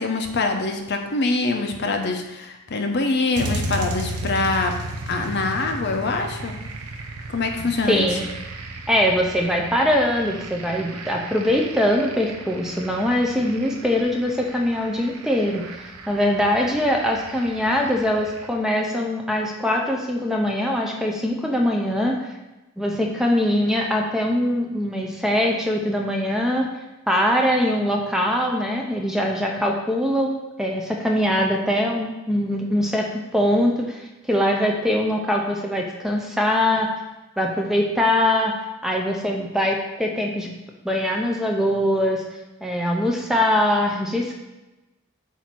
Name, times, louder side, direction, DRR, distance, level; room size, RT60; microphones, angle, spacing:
voice 1, 0.0-4.7 5.1-6.6 7.3-8.1, left 3 dB, 50° left, 3 dB, 0.7 m, -24 dB
sound 1, 3.3-18.5, right 1 dB, 80° right, 0.7 m, -35 dB
voice 2, 7.9-8.3 8.9-15.8 16.1-22.3 22.8-26.7 27.1-36.9 37.4-38.5 38.8-40.5 40.8-42.2 42.6-44.4, left 1 dB, ahead, 0 dB, 0.6 m, -22 dB
8.3 x 2.8 x 6.1 m, 1.0 s
head